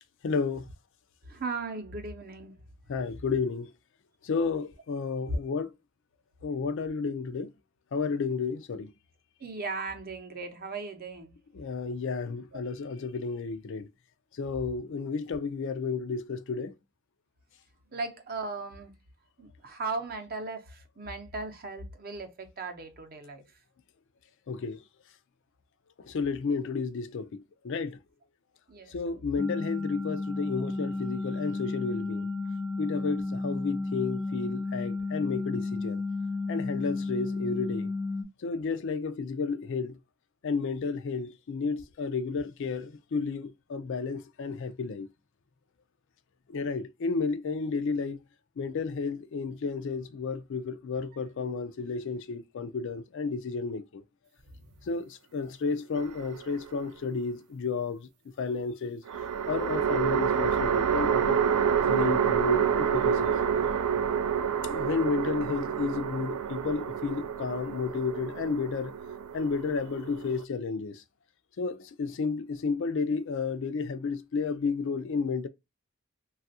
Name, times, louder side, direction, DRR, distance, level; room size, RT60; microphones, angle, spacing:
voice 1, 0.2-0.7 2.9-3.7 4.2-5.7 6.4-7.5 7.9-8.9 11.5-13.9 14.3-16.7 24.5-24.8 26.0-28.0 28.9-32.3 32.8-36.0 36.5-37.9 38.4-40.0 40.4-45.1 46.5-48.2 48.6-54.0 54.9-58.1 58.4-59.0 59.5-61.4 61.9-63.3 64.6-68.9 69.3-71.0 71.6-75.5, left 4 dB, 55° left, 0.4 m, -32 dB
voice 2, 1.2-2.6 5.3-5.4 9.4-11.3 12.5-12.6 17.9-19.0 19.4-23.4 28.7-29.2 54.6-54.7, right 3 dB, 40° right, 0.7 m, -37 dB
sound 1, 29.4-38.2, left 3 dB, ahead, 0.6 m, -33 dB
sound 2, 55.9-56.8 59.1-70.4, right 7 dB, 90° right, 0.4 m, -28 dB
3.2 x 2.3 x 2.6 m
head